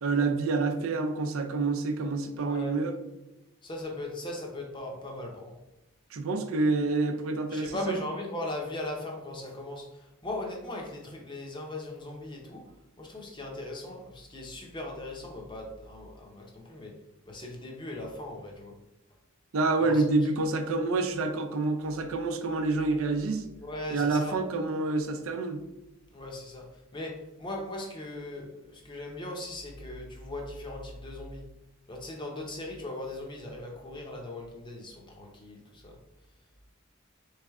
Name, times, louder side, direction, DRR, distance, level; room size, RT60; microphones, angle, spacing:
voice 1, 0.0-3.0 6.1-8.0 19.5-23.5 23.9-25.6, right 3 dB, 80° right, 6 dB, 0.5 m, -28 dB
voice 2, 2.4-2.7 3.6-5.6 7.5-9.8 10.2-12.6 13.0-16.9 17.3-18.7 19.8-20.0 23.6-24.4 26.1-26.6 26.9-31.5 31.9-35.9, left 1 dB, 20° left, 0 dB, 0.7 m, -38 dB
3.5 x 3.2 x 3.5 m, 0.94 s
head